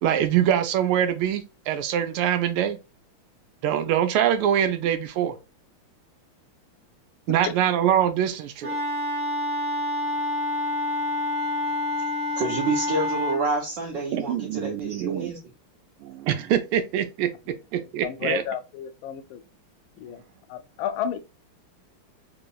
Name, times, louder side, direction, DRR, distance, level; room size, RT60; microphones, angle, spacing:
voice 1, 0.0-2.8 3.6-5.4 7.3-8.8 14.1-15.3 16.0-17.3 17.7-18.4, right 10 dB, 80° right, 1.5 m, -24 dB
Wind instrument woodwind instrument, 8.6-13.4, left 1 dB, 40° right, 0.7 m, -27 dB
voice 2, 12.4-15.4, right 3 dB, 65° right, 1.4 m, -28 dB
voice 3, 18.0-19.4 20.0-20.2 20.5-21.2, left 9 dB, 75° left, 1.2 m, -31 dB
3.5 x 3.0 x 2.3 m
omnidirectional pair, 2.4 m